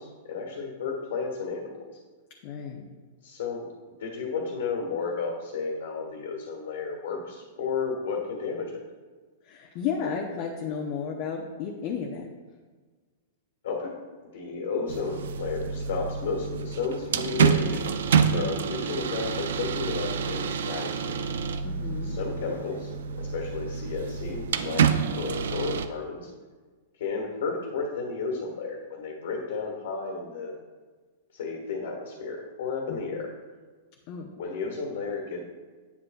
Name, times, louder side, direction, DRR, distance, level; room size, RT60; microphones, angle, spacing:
voice 1, 0.0-1.9 3.2-3.7 4.0-8.8 13.6-13.9 14.3-17.9 18.3-21.2 22.0-22.9 23.2-24.8 25.2-26.3 27.0-30.5 31.3-33.3 34.3-35.4, left 4 dB, 75° left, 0 dB, 1.6 m, -32 dB
voice 2, 2.4-2.9 9.4-12.3 21.6-22.2 32.9-33.2 34.1-34.3, left 6 dB, 45° left, 1 dB, 0.8 m, -33 dB
sound 1, 14.9-25.9, right 6 dB, 80° right, 0.4 m, -28 dB
9.4 x 7.7 x 2.3 m, 1.4 s
hypercardioid pair, 150°, 0 cm